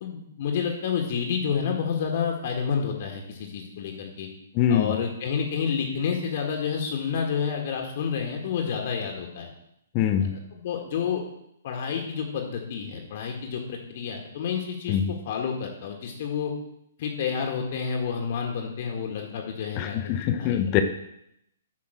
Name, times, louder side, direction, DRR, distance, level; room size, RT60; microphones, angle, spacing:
voice 1, 0.0-4.3 4.7-9.5 10.2-11.2 11.6-16.5 17.0-20.0 20.3-20.6, left 6 dB, 45° left, 1 dB, 1.8 m, -29 dB
voice 2, 4.5-4.9 9.9-10.3 14.9-15.1 19.8-20.8, left 10 dB, 30° left, 8 dB, 0.8 m, -23 dB
8.8 x 5.7 x 6.2 m, 0.77 s
figure-of-eight pair, 120°, 0 cm